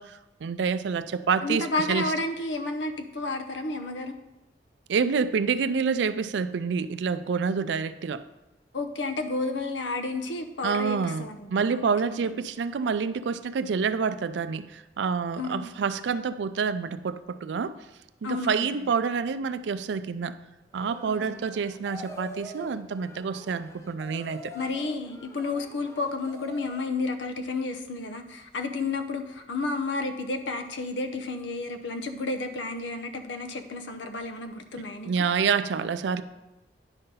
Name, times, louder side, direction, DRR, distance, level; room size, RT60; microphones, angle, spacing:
voice 1, 0.0-2.1 4.9-8.2 10.6-17.8 18.2-20.4 20.7-24.5 35.0-36.2, right 5 dB, 75° right, 13 dB, 0.4 m, -28 dB
voice 2, 1.4-4.2 8.7-12.2 15.4-15.7 18.2-18.9 21.0-21.4 24.5-35.1, left 3 dB, 80° left, 6 dB, 0.7 m, -31 dB
sound 1, 20.7-26.9, left 1 dB, 15° left, 0.7 m, -45 dB
9.9 x 3.8 x 5.5 m, 1.0 s
head